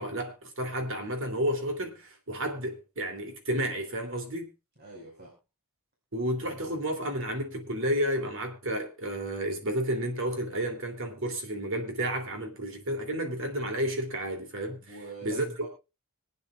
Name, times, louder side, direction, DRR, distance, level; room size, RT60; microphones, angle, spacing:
voice 1, 0.0-4.5 6.1-14.8 15.2-15.4, right 1 dB, 60° right, 2.9 m, -31 dB
voice 2, 4.8-5.3 14.8-15.7, right 2 dB, 45° right, 5.0 m, -43 dB
26.0 x 9.5 x 2.4 m
head